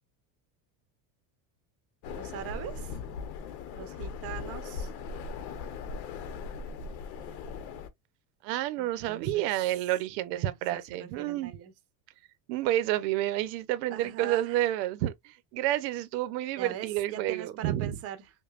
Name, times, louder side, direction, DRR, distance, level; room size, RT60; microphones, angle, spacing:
sound 1, 2.0-7.9, left 5 dB, 80° left, 1.0 m, -39 dB
voice 1, 2.1-3.0 3.7-4.9 8.8-9.5 10.3-11.7 13.9-14.6 16.6-18.3, right 11 dB, 30° right, 0.6 m, -41 dB
voice 2, 8.4-11.5 12.5-17.9, right 14 dB, 85° right, 0.8 m, -29 dB
5.3 x 2.2 x 2.4 m
cardioid pair, 155°, 49 cm